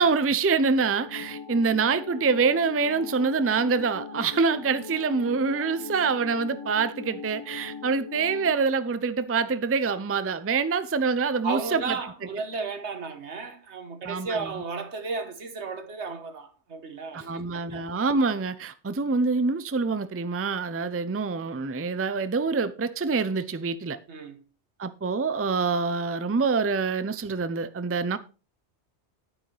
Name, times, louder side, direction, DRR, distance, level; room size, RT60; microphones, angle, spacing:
voice 1, 0.0-11.8 14.1-14.5 17.1-24.0 24.8-28.2, right 4 dB, 20° right, 0.4 m, -25 dB
sound 1, 1.0-8.5, left 5 dB, 30° left, 0.8 m, -40 dB
voice 2, 11.4-17.9 24.1-24.4, right 4 dB, 75° right, 1.7 m, -34 dB
10.5 x 9.6 x 3.3 m
omnidirectional pair, 1.2 m